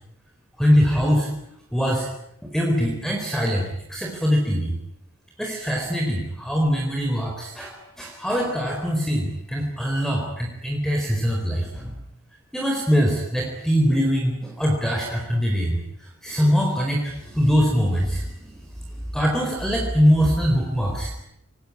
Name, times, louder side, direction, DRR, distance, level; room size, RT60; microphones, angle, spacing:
voice 1, 0.6-1.3 1.7-2.1 2.4-4.7 5.4-12.0 12.5-18.6 19.1-21.1, equal, ahead, 0 dB, 4.3 m, -23 dB
25.5 x 21.0 x 9.8 m, 0.80 s
head